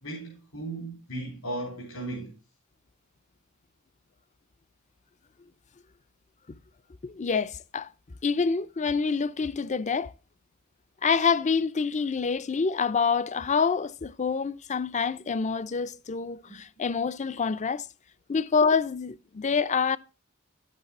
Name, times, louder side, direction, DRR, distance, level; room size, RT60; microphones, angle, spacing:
voice 1, 0.0-2.3 16.5-16.6, right 1 dB, 70° left, 3.7 m, -36 dB
voice 2, 7.0-7.9 8.2-10.1 11.0-17.9 18.3-20.0, left 5 dB, 35° left, 0.5 m, -26 dB
11.0 x 8.2 x 4.1 m
head